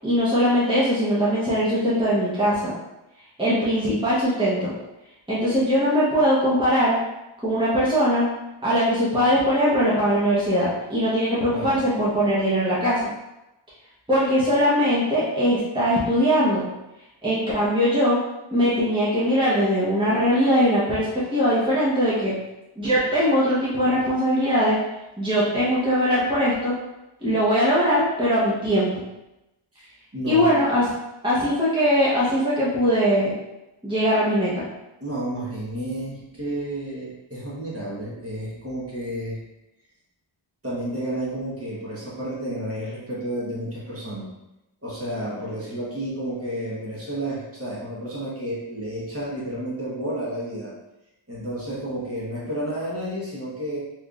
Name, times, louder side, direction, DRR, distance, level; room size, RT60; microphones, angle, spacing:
voice 1, 0.0-2.7 3.4-4.7 5.3-7.0 7.4-8.3 8.6-13.0 14.1-16.6 17.2-18.2 18.5-22.3 22.8-24.8 25.2-26.7 27.2-28.9 30.2-30.8 31.2-33.4 33.8-34.6, equal, 10° right, -9 dB, 1.0 m, -21 dB
voice 2, 11.5-11.8 29.7-30.5 35.0-39.4 40.6-44.3 44.8-50.7 51.3-53.8, right 1 dB, 30° right, -7 dB, 1.2 m, -31 dB
3.4 x 3.2 x 2.5 m, 0.95 s
wide cardioid pair, 65°, 48 cm